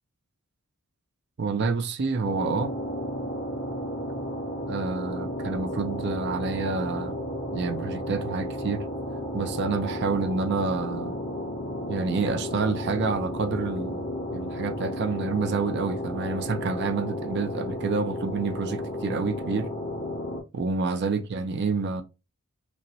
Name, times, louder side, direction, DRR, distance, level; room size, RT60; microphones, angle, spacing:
voice 1, 1.4-2.7 4.7-7.2 7.5-8.8 9.3-11.2 11.9-14.0 14.3-19.7 20.5-22.0, right 4 dB, 50° right, 0.4 m, -28 dB
sound 1, 2.2-20.4, left 1 dB, 75° left, 2.0 m, -33 dB
5.2 x 2.1 x 2.7 m
head